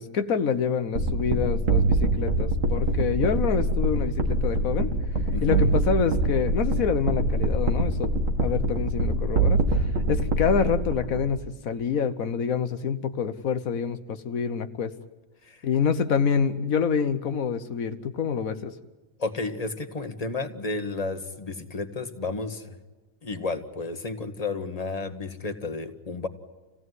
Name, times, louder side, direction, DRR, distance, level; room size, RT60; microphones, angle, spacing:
voice 1, 0.0-4.9 5.4-8.1 8.4-14.9 15.6-18.7, left 6 dB, 85° left, 10 dB, 1.5 m, -27 dB
sound 1, 0.9-11.4, right 2 dB, 70° right, 2.7 m, -24 dB
voice 2, 5.3-5.8 15.5-15.6 19.2-22.7 23.2-26.3, left 3 dB, 25° left, 7 dB, 1.9 m, -32 dB
28.5 x 17.0 x 9.6 m, 1.3 s
omnidirectional pair, 1.4 m